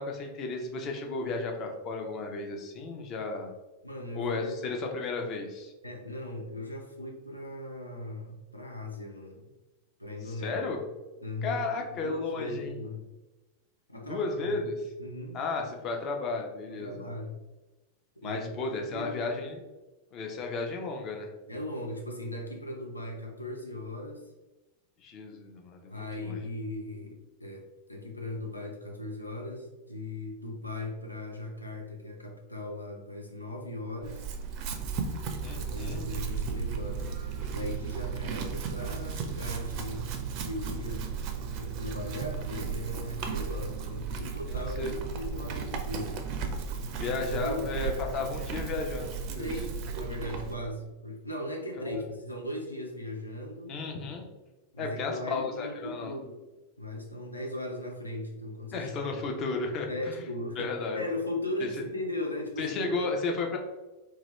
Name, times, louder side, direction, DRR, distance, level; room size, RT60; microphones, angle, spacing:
voice 1, 0.0-3.5 4.2-5.7 10.2-10.8 11.4-12.7 14.1-14.9 15.3-17.1 18.2-19.7 20.1-21.3 25.0-26.4 35.4-36.1 44.5-44.9 46.9-49.5 51.8-52.0 53.7-54.2 54.8-56.1 58.7-60.2 60.6-61.0 61.6-61.7 62.6-63.6, left 3 dB, 35° left, 2 dB, 0.5 m, -34 dB
voice 2, 3.8-4.5 5.8-9.5 10.0-10.7 11.2-13.1 13.9-14.6 15.0-15.4 16.7-17.4 18.2-19.4 21.5-24.3 25.9-34.3 35.5-37.1 37.5-40.1 40.4-41.1 41.5-46.2 47.3-47.7 49.4-53.8 54.7-56.4 56.8-59.1 59.9-63.0, left 1 dB, 85° left, 1 dB, 0.4 m, -38 dB
Chewing mastication / Livestock farm animals working animals, 34.0-50.6, right 6 dB, 40° right, 0.4 m, -35 dB
2.8 x 2.3 x 3.0 m, 1.1 s
figure-of-eight pair, 90°, 0 cm